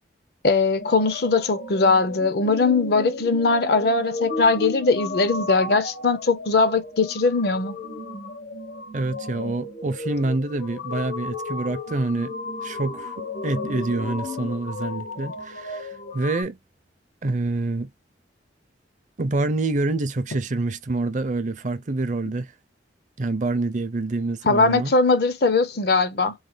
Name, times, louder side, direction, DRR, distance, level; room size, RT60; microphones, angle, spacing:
voice 1, 0.4-7.8 24.5-26.3, left 3 dB, 55° left, 0.5 m, -20 dB
sound 1, 0.8-16.4, left 3 dB, 75° left, 1.0 m, -34 dB
voice 2, 8.9-12.3 12.6-16.6 17.2-17.9 19.2-22.5 23.2-24.9, right 2 dB, 40° right, 0.5 m, -26 dB
3.1 x 2.2 x 3.8 m
head